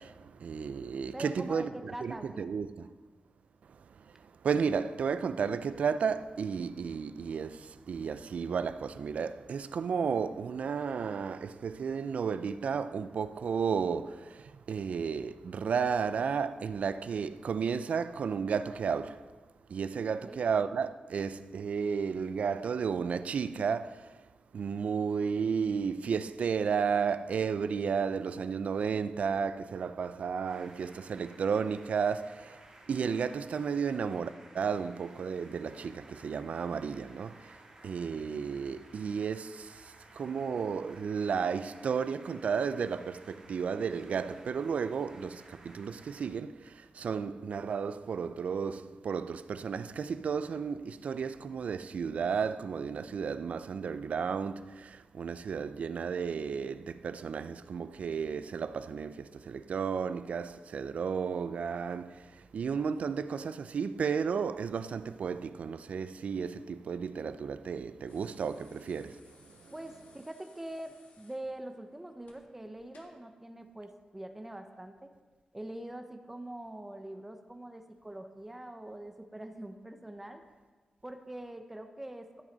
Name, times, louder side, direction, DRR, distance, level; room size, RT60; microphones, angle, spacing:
voice 1, 0.0-2.9 3.6-19.3 19.7-24.2 24.5-32.6 32.9-69.7, right 6 dB, 65° right, 0.4 m, -33 dB
voice 2, 1.1-2.5 20.2-20.4 69.7-75.1 75.5-80.4 81.0-82.4, right 1 dB, 10° right, 0.5 m, -44 dB
sound 1, 30.5-46.3, right 2 dB, 40° right, 1.9 m, -56 dB
sound 2, 68.1-73.2 74.6-74.7, left 3 dB, 85° left, 1.3 m, -62 dB
14.5 x 6.2 x 3.9 m
wide cardioid pair, 170°, 2 cm